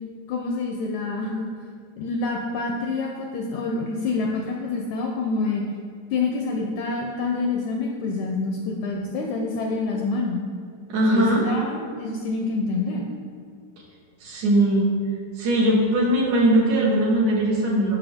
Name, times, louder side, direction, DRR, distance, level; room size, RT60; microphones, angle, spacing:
voice 1, 0.3-1.5 2.0-5.6 6.1-10.4 11.1-13.1, left 3 dB, 80° left, 1 dB, 1.7 m, -27 dB
voice 2, 10.9-11.4 14.2-14.9 15.4-18.0, right 1 dB, 65° right, -3 dB, 2.7 m, -20 dB
10.5 x 6.1 x 3.5 m, 2.2 s
omnidirectional pair, 3.9 m